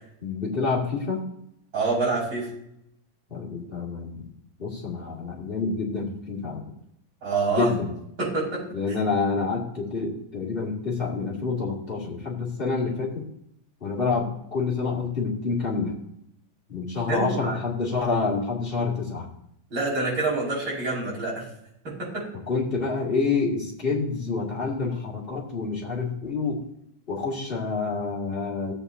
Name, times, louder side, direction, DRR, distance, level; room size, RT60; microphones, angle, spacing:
voice 1, 0.2-1.2 3.3-4.3 4.6-6.6 7.5-7.9 8.7-13.3 13.8-16.0 16.7-19.3 22.5-26.6 27.1-28.7, left 4 dB, 25° left, -3 dB, 2.4 m, -28 dB
voice 2, 1.7-2.5 7.2-7.7 8.2-8.6 17.1-17.6 19.7-21.4 21.8-22.3, right 3 dB, 70° right, -6 dB, 5.9 m, -26 dB
16.5 x 8.2 x 2.7 m, 0.76 s
omnidirectional pair, 2.3 m